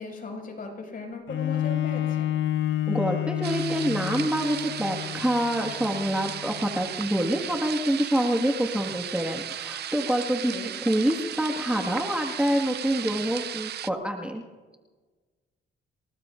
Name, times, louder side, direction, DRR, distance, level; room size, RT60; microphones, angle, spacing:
voice 1, 0.0-2.3 10.5-10.7, left 3 dB, 45° left, 1 dB, 5.7 m, -37 dB
Bowed string instrument, 1.3-6.9 7.5-7.6, left 12 dB, 85° left, 0.7 m, -30 dB
voice 2, 2.9-10.5 10.8-14.4, right 1 dB, 5° right, 1 dB, 1.7 m, -26 dB
sound 1, 3.4-13.9, right 11 dB, 55° right, 0.5 m, -36 dB
28.5 x 19.0 x 2.5 m, 1.3 s
cardioid pair, 90°, 20 cm